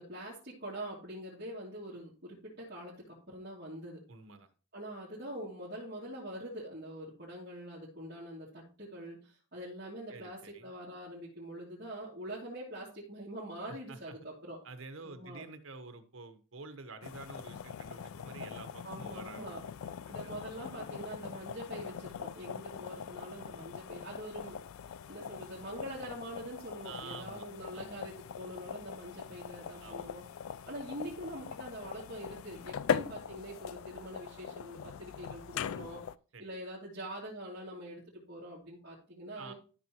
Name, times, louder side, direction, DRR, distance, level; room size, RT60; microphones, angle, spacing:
voice 1, 0.0-4.0 4.7-14.6 15.0-15.4 18.8-19.6 20.1-24.6 25.1-30.2 30.7-36.0 36.4-39.5, right 1 dB, 45° right, -8 dB, 2.5 m, -44 dB
voice 2, 4.1-4.5 10.1-10.7 13.7-14.2 14.6-19.6 20.1-20.3 26.8-27.5 27.7-28.0 29.8-30.2 36.3-36.5 39.3-39.5, right 3 dB, 80° right, 9 dB, 1.2 m, -49 dB
sound 1, 17.0-36.2, left 8 dB, 90° left, 0.3 m, -41 dB
12.5 x 5.6 x 3.0 m, 0.37 s
head